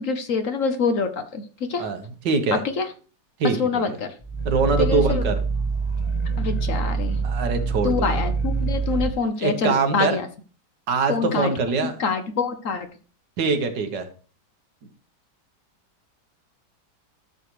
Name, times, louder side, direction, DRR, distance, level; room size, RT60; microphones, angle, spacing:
voice 1, 0.0-1.9 2.5-2.9 3.4-4.1 4.8-5.2 6.4-7.2 7.8-10.3 11.1-11.5 11.8-12.9, left 5 dB, 55° left, 9 dB, 1.1 m, -25 dB
voice 2, 1.8-2.6 3.4-4.0 4.5-5.4 7.2-8.1 9.4-10.2 10.9-11.9 13.4-14.1, right 4 dB, 85° right, 7 dB, 1.9 m, -23 dB
Growling, 4.2-9.2, right 4 dB, 25° left, 1.1 m, -25 dB
12.5 x 6.7 x 3.1 m, 0.38 s
omnidirectional pair, 1.8 m